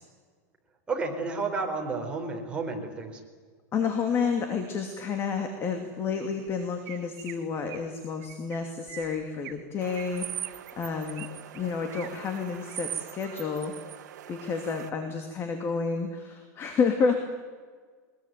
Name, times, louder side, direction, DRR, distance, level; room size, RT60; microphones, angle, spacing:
voice 1, 0.9-3.2, right 3 dB, 10° right, 0 dB, 4.7 m, -31 dB
voice 2, 3.7-11.3 11.5-17.2, left 5 dB, 25° left, 5 dB, 2.6 m, -30 dB
Chirp tweet, 6.5-6.6 6.8-7.3 7.7-7.9 8.2-8.6 8.9-9.6 9.9-11.3 11.5-12.1 12.5-12.8 13.2-13.6, right 14 dB, 50° right, 2.2 m, -45 dB
sound 1, 9.8-14.9, right 11 dB, 85° right, 1.4 m, -40 dB
23.0 x 21.5 x 9.4 m, 1.5 s
supercardioid pair, 145°, 9 cm